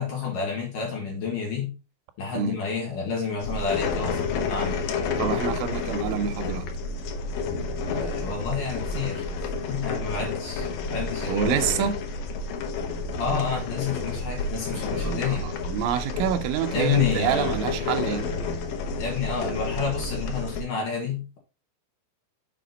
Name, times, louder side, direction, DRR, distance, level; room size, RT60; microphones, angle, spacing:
voice 1, 0.0-1.7 2.2-5.1 7.9-9.3 9.7-11.5 13.2-15.5 16.7-17.6 19.0-21.4, left 6 dB, 55° left, 2.8 m, -29 dB
sound 1, 3.4-20.6, left 4 dB, 80° left, 1.9 m, -30 dB
voice 2, 5.2-6.7 11.3-12.0 14.7-18.3, right 9 dB, 85° right, 3.1 m, -27 dB
7.4 x 5.1 x 3.9 m
omnidirectional pair, 5.4 m